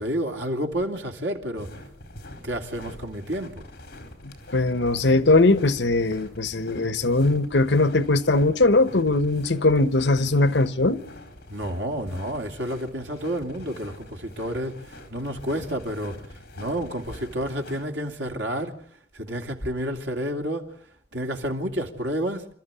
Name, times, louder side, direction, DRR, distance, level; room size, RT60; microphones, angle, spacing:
voice 1, 0.0-1.7 2.4-3.7 11.5-16.3 16.6-18.8 19.1-20.7 21.1-22.5, equal, 85° right, 2.9 m, -30 dB
sound 1, 1.6-17.8, left 1 dB, 60° left, 4.7 m, -45 dB
voice 2, 4.2-11.0, left 2 dB, 80° left, 1.1 m, -20 dB
27.5 x 13.5 x 10.0 m
head